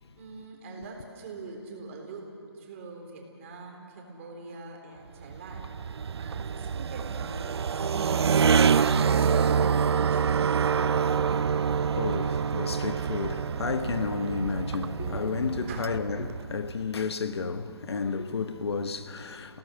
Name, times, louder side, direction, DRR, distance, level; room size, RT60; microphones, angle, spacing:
voice 1, 0.2-2.3 2.5-10.4 15.7-15.9, right 3 dB, 30° right, 4.0 m, -44 dB
sound 1, 5.2-16.8, right 6 dB, 70° right, 0.6 m, -26 dB
voice 2, 11.6-19.6, left 5 dB, 70° left, 1.3 m, -32 dB
29.0 x 18.0 x 7.2 m
hypercardioid pair, 165°, 14 cm